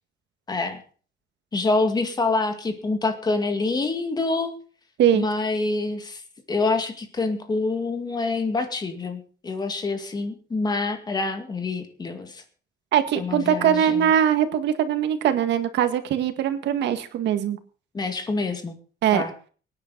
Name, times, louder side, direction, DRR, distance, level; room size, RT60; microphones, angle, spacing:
voice 1, 0.5-0.8 1.5-4.5 5.1-6.2 6.5-12.4 13.2-14.1 17.9-18.7 19.1-19.3, left 3 dB, 20° left, 6 dB, 2.2 m, -26 dB
voice 2, 12.9-17.6 19.0-19.2, right 9 dB, 85° right, 8 dB, 1.9 m, -21 dB
25.0 x 10.0 x 4.0 m, 0.41 s
cardioid pair, 175°, 18 cm